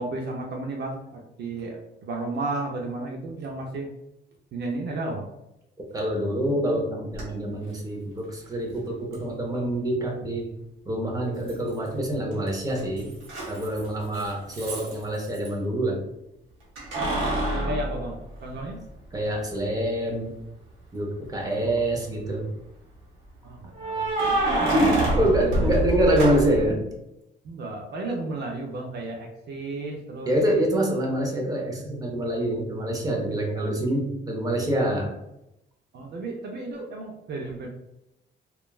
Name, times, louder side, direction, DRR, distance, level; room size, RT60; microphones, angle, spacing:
voice 1, 0.0-1.8 2.0-3.9 4.5-5.3 17.6-18.8 23.4-24.4 24.9-25.7 27.4-30.3 33.5-33.7 35.9-37.7, right 2 dB, 60° right, 1 dB, 0.5 m, -33 dB
voice 2, 5.9-10.5 10.9-13.1 13.5-16.0 19.1-20.3 20.9-22.5 24.7-26.8 30.3-35.1, right 1 dB, 20° right, 0 dB, 0.7 m, -26 dB
Keys jangling, 7.1-7.2 9.1-9.2 11.5-12.0 12.3-15.5 16.8-18.9 19.4-19.5 21.2-21.8 23.7-26.7, right 1 dB, 90° right, 0.8 m, -27 dB
2.9 x 2.3 x 2.3 m, 0.87 s
cardioid pair, 90°, 20 cm